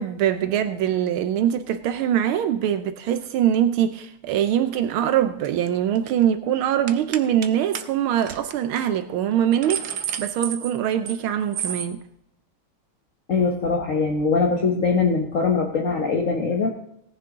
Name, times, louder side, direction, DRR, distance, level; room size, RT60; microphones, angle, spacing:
voice 1, 0.0-9.8 10.2-12.0, right 10 dB, 80° right, 1.5 m, -23 dB
sound 1, 5.4-5.7 5.9-6.2 6.9-7.5 7.7-7.8 8.2-8.4 8.8-8.9 9.3-11.2 11.5-11.9, right 8 dB, 60° right, 1.2 m, -31 dB
voice 2, 13.3-16.7, left 4 dB, 45° left, 1.2 m, -22 dB
18.0 x 10.0 x 3.7 m
omnidirectional pair, 2.3 m